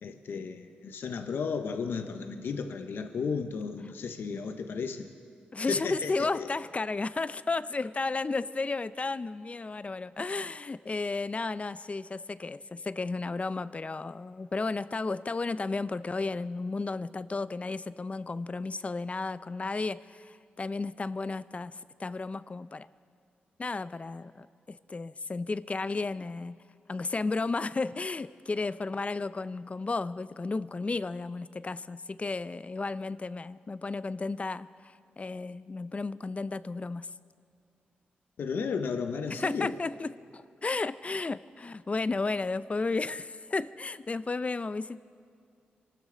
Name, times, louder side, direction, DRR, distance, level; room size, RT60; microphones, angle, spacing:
voice 1, 0.0-5.1 5.7-6.5 38.4-39.7, left 5 dB, 75° left, 6 dB, 0.9 m, -34 dB
voice 2, 5.5-22.9 23.6-26.6 26.9-37.1 39.3-45.0, left 3 dB, 35° left, 16 dB, 0.5 m, -33 dB
24.0 x 13.0 x 3.9 m, 2.3 s
cardioid pair, 50°, 4 cm